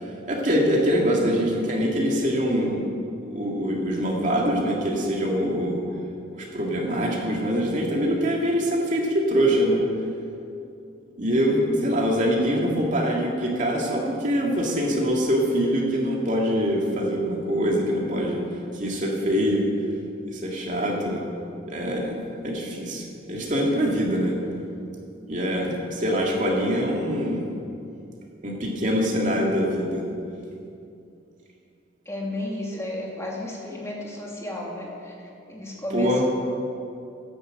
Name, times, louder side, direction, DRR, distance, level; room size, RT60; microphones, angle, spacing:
voice 1, 0.3-2.8 3.3-5.8 6.3-9.8 11.2-18.4 18.7-19.7 20.3-21.2 21.7-22.2 22.4-24.3 25.3-27.5 28.4-30.0 35.9-36.2, equal, 40° right, -1 dB, 2.2 m, -24 dB
voice 2, 32.1-36.2, left 1 dB, 15° left, -2 dB, 2.1 m, -33 dB
10.5 x 10.0 x 8.0 m, 2.6 s
head